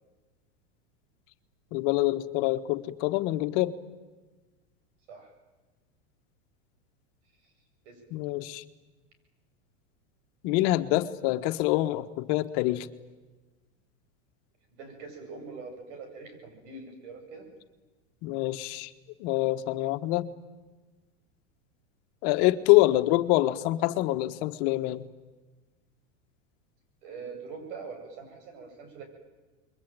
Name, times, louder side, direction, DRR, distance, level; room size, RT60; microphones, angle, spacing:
voice 1, 1.7-3.7 8.1-8.6 10.4-12.9 18.2-18.9 19.2-20.3 22.2-25.0, left 17 dB, 55° left, 9 dB, 1.6 m, -25 dB
voice 2, 14.7-17.5 27.0-29.0, right 4 dB, 65° right, 6 dB, 7.8 m, -43 dB
28.0 x 22.5 x 9.1 m, 1.3 s
supercardioid pair, 130°, 37 cm